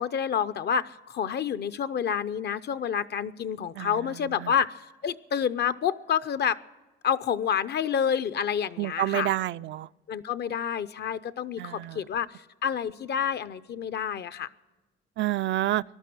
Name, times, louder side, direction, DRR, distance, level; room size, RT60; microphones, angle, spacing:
voice 1, 0.0-6.6 7.0-9.3 10.1-12.3 12.6-14.5, left 8 dB, 55° left, 15 dB, 0.7 m, -28 dB
voice 2, 8.8-9.9 11.6-12.0 15.2-15.8, right 14 dB, 70° right, 14 dB, 0.4 m, -28 dB
18.0 x 12.0 x 6.2 m, 1.2 s
cardioid pair, 90°, 20 cm